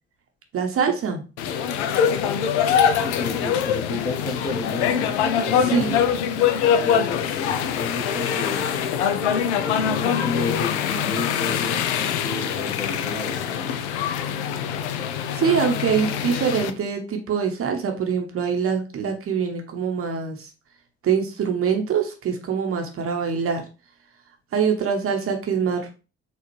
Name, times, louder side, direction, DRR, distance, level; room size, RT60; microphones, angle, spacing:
voice 1, 0.5-1.2 5.6-5.9 15.3-20.5 21.0-23.6 24.5-25.9, right 6 dB, 40° right, 4 dB, 0.8 m, -24 dB
sound 1, 1.4-16.7, left 8 dB, 70° left, 0.5 m, -23 dB
voice 2, 3.0-6.0 6.4-8.7 9.6-13.7, left 3 dB, 30° left, -4 dB, 1.2 m, -32 dB
4.0 x 2.4 x 3.1 m, 0.32 s
figure-of-eight pair, 45°, 34 cm